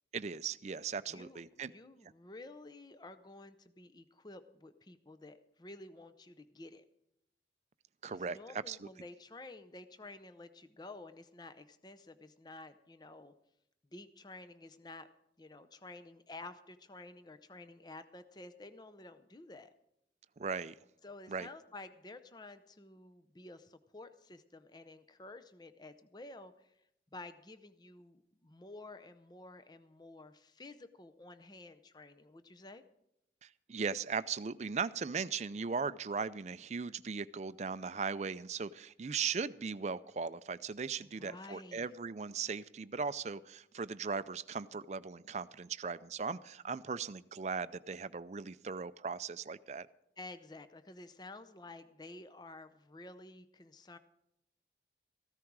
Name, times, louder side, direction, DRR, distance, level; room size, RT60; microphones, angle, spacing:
voice 1, 0.1-1.7 8.0-8.9 20.4-20.7 21.3-21.5 33.4-49.9, right 5 dB, 40° right, 16 dB, 0.4 m, -38 dB
voice 2, 1.1-6.8 8.1-13.3 13.9-15.1 15.4-19.7 21.0-26.8 27.1-32.8 41.0-41.9 50.2-54.0, left 2 dB, 25° left, 11 dB, 0.6 m, -51 dB
14.5 x 13.0 x 4.7 m, 0.79 s
head